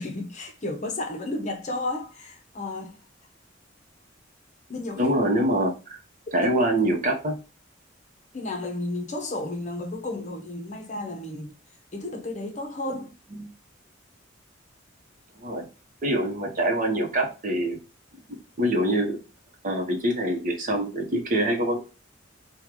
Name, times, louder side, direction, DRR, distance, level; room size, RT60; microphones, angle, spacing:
voice 1, 0.0-2.9 4.7-5.1 6.4-6.5 8.3-11.5 11.9-13.1, left 2 dB, 40° left, 0.7 m, -32 dB
voice 2, 5.0-6.0 6.3-7.4 13.3-13.5 15.4-15.7 16.0-17.8 18.3-19.2 19.6-21.8, right 1 dB, 45° right, 0.9 m, -25 dB
3.7 x 2.3 x 3.0 m
head